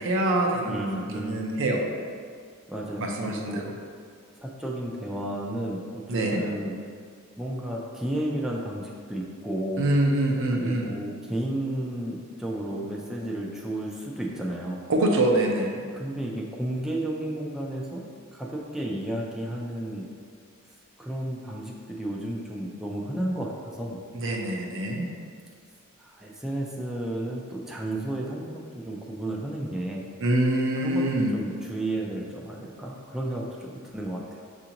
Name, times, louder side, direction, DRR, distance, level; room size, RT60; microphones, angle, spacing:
voice 1, 0.0-0.9 1.1-1.9 3.0-3.6 6.1-6.4 9.8-10.9 14.9-15.8 24.1-25.1 30.2-31.3, right 1 dB, 60° right, 1 dB, 0.6 m, -25 dB
voice 2, 0.7-1.4 2.7-3.7 4.4-6.7 7.4-9.9 10.5-14.8 15.9-18.0 18.3-20.1 21.0-24.0 26.0-30.0 30.8-31.0 31.3-34.5, right 1 dB, ahead, -3 dB, 0.4 m, -32 dB
6.6 x 2.5 x 2.8 m, 2.1 s
head